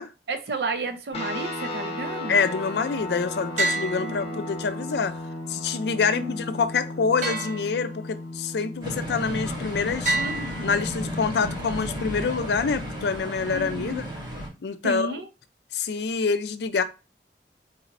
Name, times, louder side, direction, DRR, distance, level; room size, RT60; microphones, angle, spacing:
voice 1, 0.3-2.4 3.9-4.5 6.1-6.4 10.1-10.8 13.5-14.1 14.8-15.3, right 2 dB, 65° right, 0.6 m, -33 dB
sound 1, 1.1-12.9, left 2 dB, 35° left, 0.9 m, -36 dB
voice 2, 2.3-5.1 5.5-10.2 10.6-14.1 14.6-15.1 15.7-16.8, left 5 dB, 65° left, 0.4 m, -26 dB
sound 2, 3.6-4.8 7.2-8.3 10.1-11.3, right 2 dB, 45° right, 1.3 m, -30 dB
sound 3, 8.8-14.5, equal, 25° right, 2.3 m, -33 dB
4.0 x 4.0 x 2.6 m
head